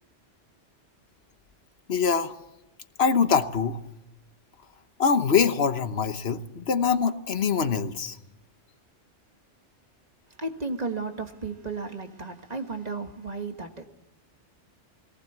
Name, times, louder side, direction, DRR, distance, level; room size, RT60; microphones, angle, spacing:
voice 1, 1.9-2.3 3.0-3.8 5.0-8.2, left 6 dB, 60° left, 10 dB, 1.3 m, -24 dB
voice 2, 10.4-13.9, right 3 dB, 35° right, 6 dB, 1.7 m, -34 dB
21.5 x 18.5 x 8.1 m, 0.88 s
omnidirectional pair, 1.2 m